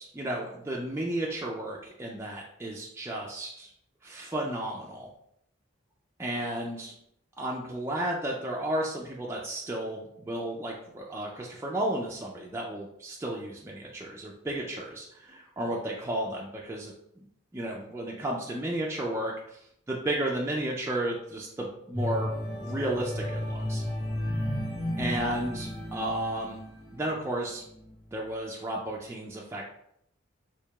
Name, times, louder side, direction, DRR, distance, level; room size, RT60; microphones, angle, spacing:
voice 1, 0.0-3.7 4.0-5.1 6.2-6.9 7.4-17.2 17.5-19.6 19.9-23.8 25.0-26.6 26.9-27.6 28.1-29.6, right 1 dB, 15° right, -2 dB, 0.3 m, -33 dB
sound 1, 21.9-27.2 27.7-27.9, left 1 dB, 25° left, 1.3 m, -33 dB
4.5 x 2.8 x 2.2 m, 0.73 s
head